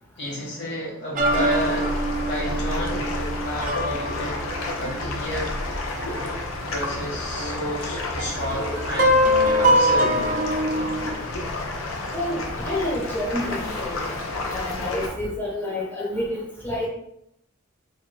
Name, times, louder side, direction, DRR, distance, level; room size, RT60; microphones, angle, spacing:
voice 1, 0.2-2.0 2.3-4.4 4.8-5.5 6.1-6.3 6.7-9.2 9.6-10.3, equal, 55° left, -3 dB, 1.0 m, -32 dB
sound 1, 1.1-6.3 6.7-6.8 7.4-11.1, equal, 40° right, 0.5 m, -23 dB
sound 2, 1.3-15.1, left 2 dB, 80° left, 0.6 m, -31 dB
voice 2, 12.1-13.9 14.5-16.9, left 1 dB, 10° left, -5 dB, 0.6 m, -28 dB
3.3 x 2.1 x 3.2 m, 0.77 s
head